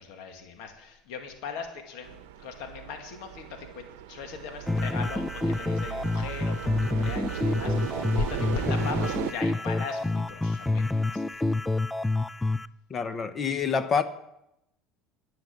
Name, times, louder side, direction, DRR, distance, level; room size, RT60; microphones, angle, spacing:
voice 1, 0.0-11.2, left 5 dB, 75° left, 2.0 m, -39 dB
sound 1, 2.0-9.3, right 12 dB, 85° right, 0.8 m, -37 dB
sound 2, 4.7-12.7, left 2 dB, 10° left, 0.4 m, -28 dB
voice 2, 12.9-14.0, left 6 dB, 35° left, 1.0 m, -27 dB
10.5 x 10.0 x 7.3 m
supercardioid pair, 95°, 0 cm